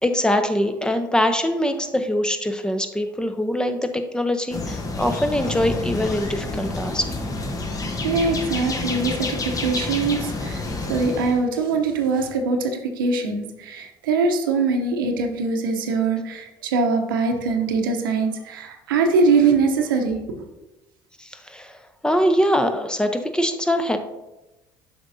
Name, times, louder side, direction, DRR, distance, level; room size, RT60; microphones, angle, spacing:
voice 1, 0.0-7.1 21.2-21.8 22.0-24.0, equal, 5° left, 7 dB, 0.7 m, -23 dB
sound 1, 4.5-11.4, left 2 dB, 30° left, 1.0 m, -28 dB
voice 2, 8.0-10.6 10.9-20.4, right 4 dB, 85° right, 4 dB, 0.8 m, -22 dB
7.8 x 5.5 x 2.7 m, 1.0 s
hypercardioid pair, 65°, 11 cm